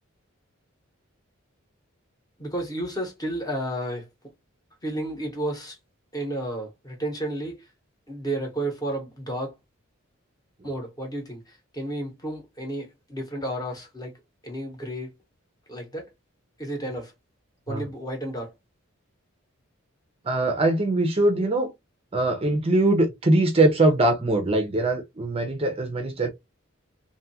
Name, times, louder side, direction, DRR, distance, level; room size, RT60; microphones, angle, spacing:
voice 1, 2.4-4.1 4.8-5.8 6.1-7.6 8.1-9.5 10.6-14.1 14.4-15.1 15.7-16.1 16.6-17.1 17.7-18.5, right 1 dB, 20° left, 0.9 m, -32 dB
voice 2, 20.2-21.7 22.1-26.3, right 2 dB, 30° right, 0.5 m, -22 dB
2.6 x 2.4 x 2.6 m
head